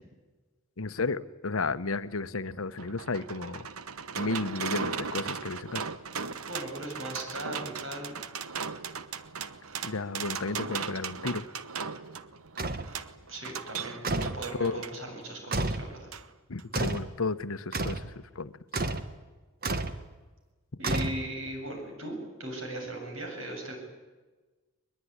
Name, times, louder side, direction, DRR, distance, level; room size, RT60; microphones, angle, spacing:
voice 1, 0.8-3.7 4.1-5.8 9.8-11.4 14.6-14.8 16.5-18.5, left 3 dB, 75° left, 13 dB, 1.0 m, -33 dB
sound 1, 2.4-15.0 16.1-16.2 16.6-16.7, right 6 dB, 90° right, 1.2 m, -37 dB
voice 2, 6.5-8.2 13.3-16.1 20.8-23.8, right 1 dB, 65° right, 3 dB, 7.7 m, -38 dB
sound 2, 12.6-12.9 14.0-14.4 15.5-15.9 16.7-17.1 17.7-18.1 18.7-19.1 19.6-20.0 20.8-21.5, right 2 dB, 45° right, 1.4 m, -30 dB
22.0 x 22.0 x 9.6 m, 1.3 s
head